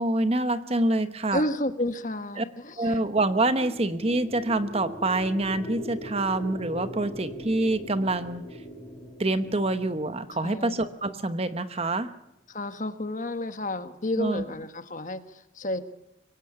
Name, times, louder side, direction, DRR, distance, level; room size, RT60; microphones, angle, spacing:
voice 1, 0.0-1.4 2.4-2.5 2.8-8.4 9.2-12.1 14.2-14.4, right 2 dB, 30° right, 11 dB, 1.0 m, -26 dB
voice 2, 1.3-3.0 10.4-10.8 12.5-15.8, left 1 dB, 45° left, 9 dB, 1.4 m, -31 dB
sound 1, 3.1-11.2, equal, ahead, 5.7 m, -41 dB
24.0 x 17.5 x 8.7 m, 0.89 s
head